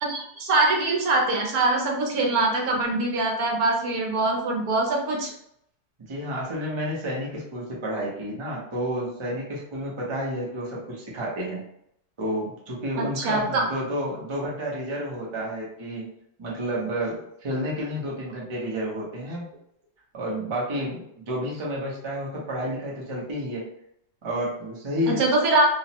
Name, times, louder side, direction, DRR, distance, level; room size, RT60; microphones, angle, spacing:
voice 1, 0.0-5.3 13.0-13.6 25.1-25.6, right 2 dB, 75° right, -1 dB, 1.2 m, -23 dB
voice 2, 6.1-11.6 12.2-16.1 16.4-19.5 20.1-23.7 24.2-25.2, equal, 30° right, -4 dB, 0.5 m, -30 dB
2.9 x 2.0 x 2.8 m, 0.72 s
omnidirectional pair, 1.6 m